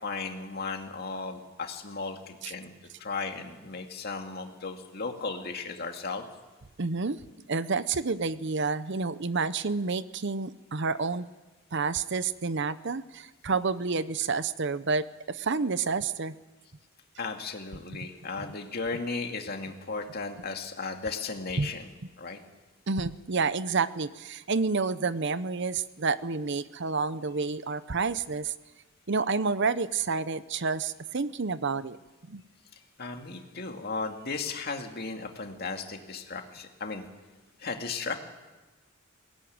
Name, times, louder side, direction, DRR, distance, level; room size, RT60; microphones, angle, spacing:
voice 1, 0.0-6.3 17.2-21.9 22.2-22.4 33.0-37.0 37.6-38.2, left 4 dB, 45° left, 4 dB, 2.4 m, -35 dB
voice 2, 6.8-7.2 7.5-11.3 11.7-16.3 17.9-18.0 21.6-21.7 22.9-28.5 29.1-32.0 32.3-32.4, right 4 dB, 55° right, 14 dB, 0.7 m, -29 dB
21.5 x 17.5 x 9.5 m, 1.2 s
head